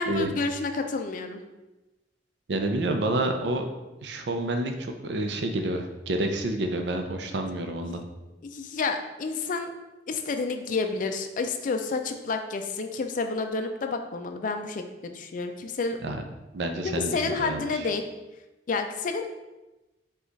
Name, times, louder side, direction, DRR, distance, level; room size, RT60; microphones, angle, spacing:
voice 1, 0.0-1.4 7.8-8.0 8.4-9.7 10.1-16.0 16.8-18.0 18.7-19.3, left 4 dB, 45° left, 6 dB, 0.4 m, -30 dB
voice 2, 2.5-3.7 4.0-8.0 16.0-16.2 16.5-17.7, right 2 dB, 65° right, 5 dB, 0.5 m, -29 dB
5.0 x 2.4 x 3.9 m, 1.0 s
head